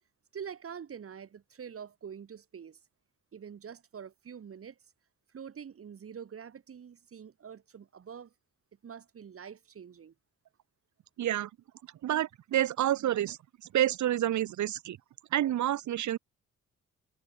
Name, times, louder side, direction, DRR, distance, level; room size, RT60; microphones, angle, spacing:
voice 1, 0.3-2.8 3.3-4.8 5.3-8.3 8.8-10.1, right 7 dB, 50° right, 3.5 m, -45 dB
voice 2, 11.2-11.5 12.0-13.4 13.7-15.0 15.3-16.2, right 12 dB, 70° right, 2.0 m, -28 dB
cardioid pair, 90°, 30 cm